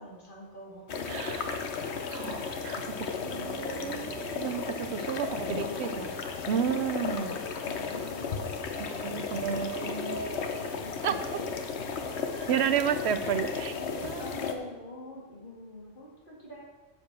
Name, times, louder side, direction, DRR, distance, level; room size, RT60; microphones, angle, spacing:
voice 1, 0.0-2.0 3.2-4.1 5.2-6.2 7.1-11.5 11.7-11.9 12.3-12.5 13.0-16.6, left 1 dB, 50° left, -3 dB, 2.3 m, -45 dB
sound 1, 0.9-14.5, left 5 dB, 80° left, 1.1 m, -35 dB
voice 2, 1.1-1.6 2.1-6.1 6.5-7.4 8.8-10.2 11.0-11.3 12.5-14.4, right 8 dB, 75° right, 10 dB, 0.9 m, -32 dB
7.7 x 7.0 x 6.0 m, 1.2 s
omnidirectional pair, 1.1 m